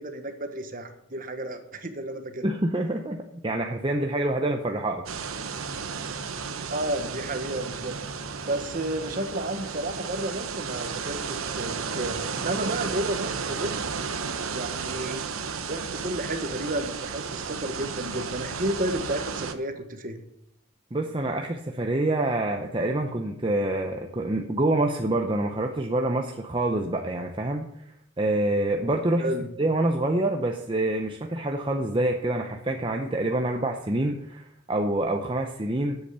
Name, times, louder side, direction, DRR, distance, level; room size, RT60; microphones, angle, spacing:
voice 1, 0.0-2.4 6.7-8.0 8.4-13.8 14.5-15.2 15.7-20.2 29.2-29.5, right 1 dB, 40° right, 7 dB, 1.2 m, -32 dB
voice 2, 2.4-5.0 20.9-27.7 28.2-29.2 29.6-36.0, right 1 dB, 25° right, 3 dB, 0.7 m, -26 dB
sound 1, 5.1-19.5, right 5 dB, 80° right, 1.0 m, -33 dB
10.0 x 8.2 x 6.8 m, 0.78 s
head